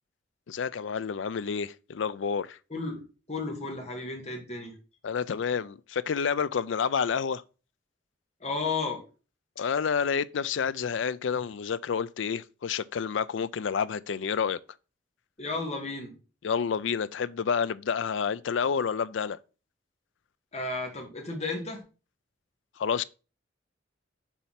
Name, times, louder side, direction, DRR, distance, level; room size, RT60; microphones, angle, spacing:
voice 1, 0.5-2.6 5.0-7.4 9.6-14.6 16.4-19.4 22.8-23.0, left 6 dB, 85° left, 0.4 m, -29 dB
voice 2, 2.7-3.0 3.3-4.7 8.4-9.0 15.4-16.2 20.5-21.8, left 3 dB, 35° left, 2.1 m, -33 dB
7.2 x 4.4 x 5.7 m
head